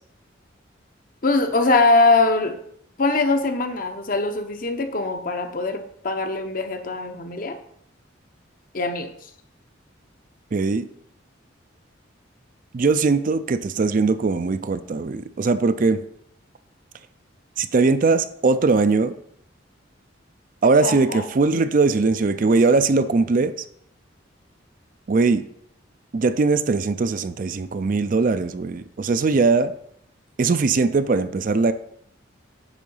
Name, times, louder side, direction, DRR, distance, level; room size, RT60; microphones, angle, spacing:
voice 1, 1.2-2.6 3.0-7.6 8.7-9.1 20.6-21.2, left 3 dB, 45° left, 7 dB, 0.8 m, -22 dB
voice 2, 10.5-10.9 12.7-16.0 17.6-19.1 20.6-23.5 25.1-25.4 26.1-29.7 30.4-31.7, right 4 dB, 45° right, 11 dB, 0.4 m, -20 dB
10.0 x 3.8 x 5.4 m, 0.69 s
head